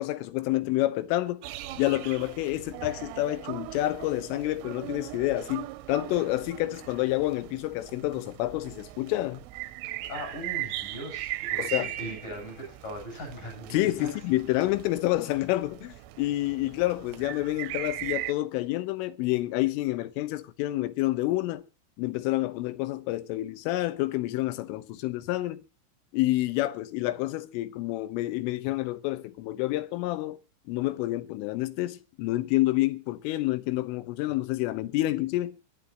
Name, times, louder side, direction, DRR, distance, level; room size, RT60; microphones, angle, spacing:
voice 1, 0.0-1.4 1.8-9.4 11.6-11.9 13.7-21.6 22.0-25.6 26.1-30.4 30.7-35.6, left 17 dB, 80° left, 3.6 m, -28 dB
sound 1, 1.4-18.3, right 14 dB, 85° right, 3.4 m, -39 dB
voice 2, 9.8-14.1, equal, 40° left, 9.2 m, -40 dB
21.5 x 14.0 x 2.9 m
omnidirectional pair, 5.8 m